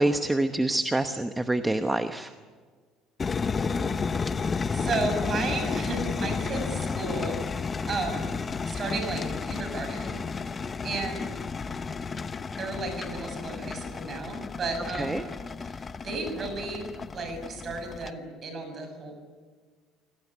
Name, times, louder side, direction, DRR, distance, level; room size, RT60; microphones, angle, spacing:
voice 1, 0.0-2.3 14.9-15.2, right 2 dB, 10° right, 8 dB, 1.0 m, -26 dB
sound 1, 3.2-18.1, left 5 dB, 20° left, 0.9 m, -32 dB
voice 2, 4.7-7.4 7.9-8.3 8.7-10.2 10.8-11.3 12.6-15.3 15.6-16.9 17.1-19.2, right 3 dB, 30° right, 6 dB, 6.6 m, -33 dB
28.0 x 18.5 x 9.9 m, 1.6 s
cardioid pair, 150°, 0 cm